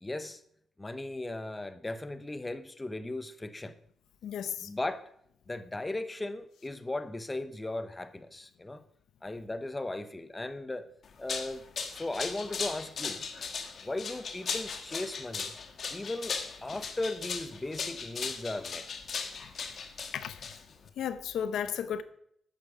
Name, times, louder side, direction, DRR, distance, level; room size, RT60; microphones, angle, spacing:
voice 1, 0.0-0.4 0.8-3.7 4.6-5.1 5.5-8.8 9.2-10.9 11.2-11.6 11.9-13.2 13.8-15.5 15.9-16.3 16.6-18.9, left 2 dB, 15° left, 0.8 m, -37 dB
voice 2, 4.2-4.7 20.1-20.4 21.0-22.0, left 8 dB, 90° left, 0.8 m, -34 dB
sound 1, 11.0-20.9, left 5 dB, 55° left, 1.5 m, -37 dB
12.5 x 9.3 x 4.9 m
cardioid pair, 110°, 0 cm